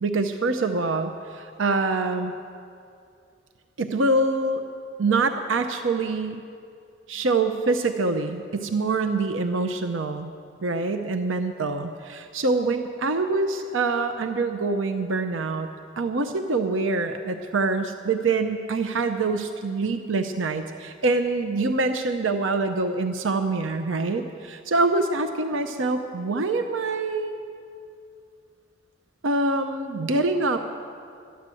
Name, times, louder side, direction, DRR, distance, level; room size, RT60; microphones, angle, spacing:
voice 1, 0.0-2.3 3.8-4.6 5.0-6.4 7.1-10.3 10.6-15.7 16.0-27.4 29.2-30.6, right 3 dB, 90° right, 7 dB, 0.7 m, -25 dB
13.5 x 10.5 x 7.6 m, 2.4 s
head